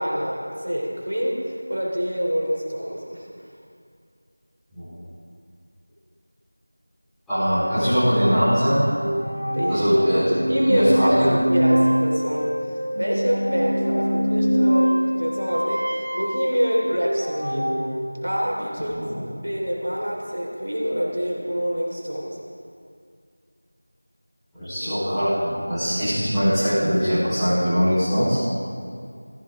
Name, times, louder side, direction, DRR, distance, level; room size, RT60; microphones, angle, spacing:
voice 1, 0.0-3.3 9.5-9.9 10.3-17.7 18.2-19.0 19.4-22.4, equal, 75° right, -2 dB, 3.6 m, -26 dB
voice 2, 7.3-8.8 9.7-10.4 10.6-11.3 18.9-19.2 24.5-28.4, equal, ahead, -25 dB, 4.1 m, -21 dB
sound 1, 8.5-17.9, equal, 35° right, 2.7 m, -24 dB
14.5 x 14.5 x 3.8 m, 2.2 s
figure-of-eight pair, 175°, 0 cm